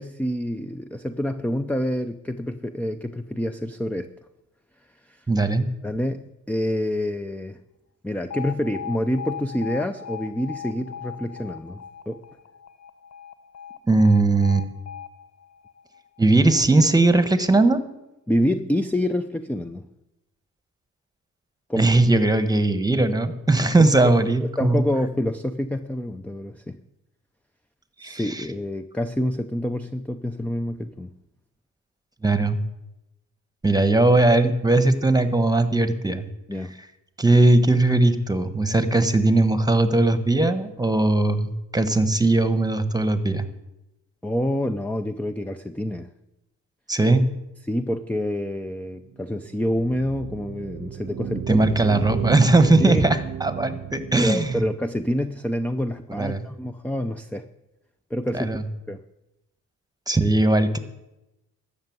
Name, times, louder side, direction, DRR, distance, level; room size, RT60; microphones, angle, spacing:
voice 1, 0.0-4.1 5.1-5.2 5.8-7.6 8.0-12.2 18.3-19.9 21.7-21.9 24.0-24.2 24.6-26.8 28.0-31.1 36.5-36.7 44.2-46.1 47.7-51.6 52.8-53.1 54.2-57.5 58.1-59.0, left 1 dB, 5° left, 9 dB, 0.6 m, -27 dB
voice 2, 5.3-5.7 13.9-14.7 16.2-17.8 21.8-24.8 28.0-28.4 32.2-32.6 33.6-36.3 37.2-43.4 46.9-47.3 51.5-54.6 56.1-56.5 58.3-58.6 60.1-60.8, right 2 dB, 10° right, 11 dB, 1.3 m, -19 dB
Alarm, 8.3-16.4, left 8 dB, 55° left, 1.1 m, -38 dB
sound 1, 49.1-49.2 49.5-54.7, right 10 dB, 40° right, 0.7 m, -33 dB
13.0 x 7.1 x 9.4 m, 0.92 s
cardioid pair, 85°, 32 cm